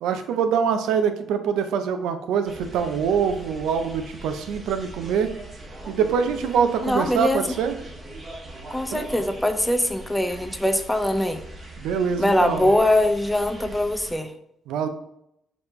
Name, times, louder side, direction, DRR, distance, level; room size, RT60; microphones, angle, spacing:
voice 1, 0.0-5.3 5.9-7.8 8.9-9.1 11.8-12.7 14.7-14.9, right 7 dB, 90° right, 8 dB, 0.5 m, -24 dB
sound 1, 2.4-14.2, right 1 dB, 30° right, 1.3 m, -41 dB
voice 2, 6.8-7.4 8.7-11.4 12.2-14.3, left 1 dB, 5° left, 8 dB, 0.5 m, -22 dB
5.0 x 3.1 x 3.1 m, 0.77 s
cardioid pair, 90°, 0 cm